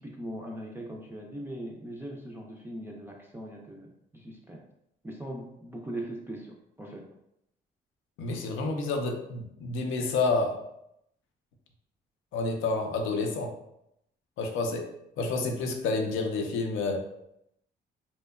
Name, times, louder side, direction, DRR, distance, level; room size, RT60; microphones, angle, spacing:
voice 1, 0.0-4.6 5.0-7.0, right 1 dB, 10° right, -1 dB, 0.3 m, -40 dB
voice 2, 8.2-10.6 12.3-13.5 14.4-14.8 15.2-17.0, left 3 dB, 85° left, 3 dB, 0.5 m, -29 dB
2.8 x 2.1 x 2.2 m, 0.79 s
cardioid pair, 90°, 20 cm